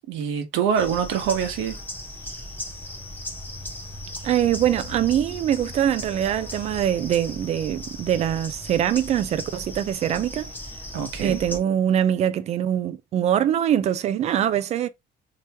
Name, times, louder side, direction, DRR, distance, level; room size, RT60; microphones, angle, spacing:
voice 1, 0.1-1.7 10.9-11.4, right 7 dB, 85° right, 1.1 m, -25 dB
sound 1, 0.7-11.6, left 1 dB, 10° left, 0.8 m, -37 dB
voice 2, 4.2-10.5 11.2-14.9, right 10 dB, 35° right, 0.3 m, -23 dB
3.4 x 2.9 x 2.9 m
cardioid pair, 165°, 19 cm